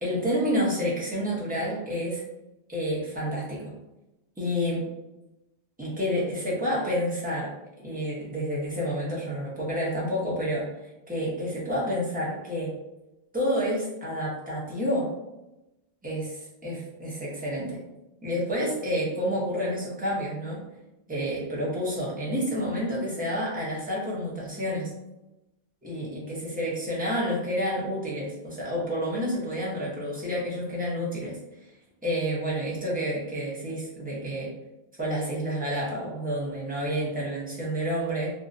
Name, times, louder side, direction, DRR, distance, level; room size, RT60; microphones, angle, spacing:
voice 1, 0.0-2.2 2.7-3.7 4.4-4.8 5.8-7.5 7.8-10.6 11.1-12.7 13.3-15.1 16.0-17.8 18.2-20.6 21.1-24.9 25.8-31.4 32.0-34.5 35.0-38.3, equal, 10° right, -6 dB, 0.6 m, -29 dB
2.5 x 2.1 x 2.5 m, 0.96 s
omnidirectional pair, 1.1 m